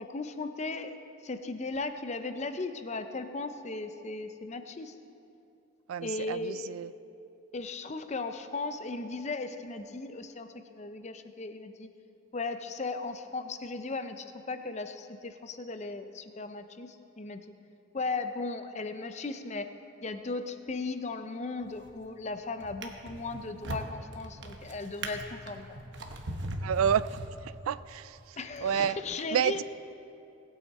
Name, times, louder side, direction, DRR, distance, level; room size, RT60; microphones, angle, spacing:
voice 1, 0.0-4.9 6.0-6.7 7.5-11.9 12.3-17.4 17.9-19.7 20.0-25.8 28.4-29.6, left 3 dB, 35° left, 9 dB, 0.5 m, -37 dB
voice 2, 5.9-6.9 26.6-27.2 27.4-29.6, right 8 dB, 85° right, 16 dB, 0.3 m, -30 dB
Drawer open or close, 21.6-22.1 22.6-27.8 28.5-28.7, right 1 dB, 55° right, 1.0 m, -40 dB
19.0 x 8.6 x 4.2 m, 2.7 s
head